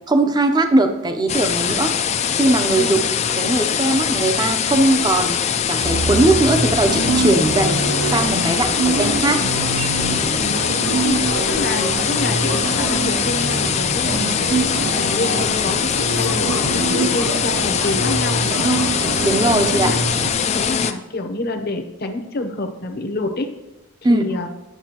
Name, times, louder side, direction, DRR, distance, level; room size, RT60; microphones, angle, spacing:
voice 1, 0.1-1.9 2.3-3.0 3.4-5.4 5.7-7.8 8.1-9.4 19.2-20.0 24.0-24.3, right 2 dB, 20° right, 6 dB, 0.6 m, -19 dB
sound 1, 1.3-20.9, left 8 dB, 30° left, 0.3 m, -22 dB
sound 2, 5.8-20.3, right 2 dB, 55° right, 0.9 m, -24 dB
voice 2, 10.9-18.8 19.6-20.0 20.5-23.5 24.1-24.5, left 2 dB, 45° left, 6 dB, 0.7 m, -27 dB
9.2 x 7.0 x 2.9 m, 1.1 s
head